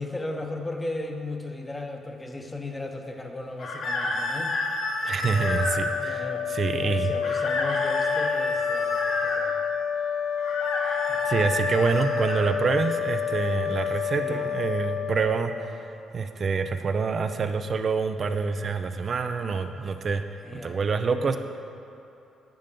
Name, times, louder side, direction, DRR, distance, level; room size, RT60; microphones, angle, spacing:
voice 1, 0.0-4.5 6.0-6.5 6.8-9.6 11.1-11.3 14.1-14.5 20.4-20.8, left 2 dB, 15° left, 4 dB, 0.9 m, -36 dB
sound 1, 3.6-5.8 7.2-9.4 10.4-12.4, left 2 dB, 65° left, 1.5 m, -30 dB
voice 2, 5.0-7.4 11.2-15.9 16.1-21.4, right 5 dB, 45° right, 8 dB, 0.5 m, -27 dB
sound 2, 5.3-15.9, left 7 dB, 85° left, 0.8 m, -29 dB
11.0 x 7.6 x 3.8 m, 2.8 s
cardioid pair, 90°, 0 cm